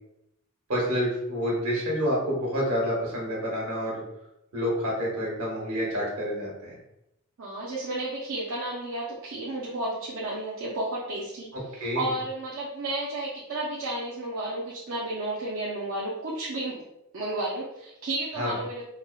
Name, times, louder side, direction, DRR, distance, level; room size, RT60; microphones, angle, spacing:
voice 1, 0.7-4.0 4.5-6.8 11.8-12.1 18.4-18.5, equal, 75° right, -4 dB, 1.1 m, -28 dB
voice 2, 7.4-16.8 17.1-18.8, right 1 dB, 60° right, -5 dB, 0.5 m, -32 dB
3.4 x 2.1 x 2.2 m, 0.84 s
head